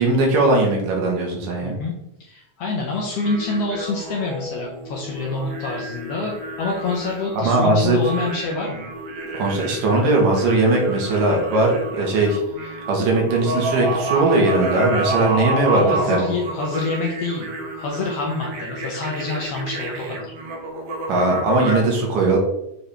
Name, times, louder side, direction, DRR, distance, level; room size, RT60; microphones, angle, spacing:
voice 1, 0.0-1.7 7.4-8.0 9.3-16.3 21.1-22.4, right 2 dB, 80° right, 0 dB, 3.0 m, -19 dB
voice 2, 1.6-1.9 2.2-8.8 15.8-20.3, left 3 dB, 70° left, -1 dB, 1.6 m, -27 dB
sound 1, 3.2-21.8, right 1 dB, 60° right, 1.7 m, -29 dB
7.6 x 4.3 x 3.4 m, 0.85 s
omnidirectional pair, 3.7 m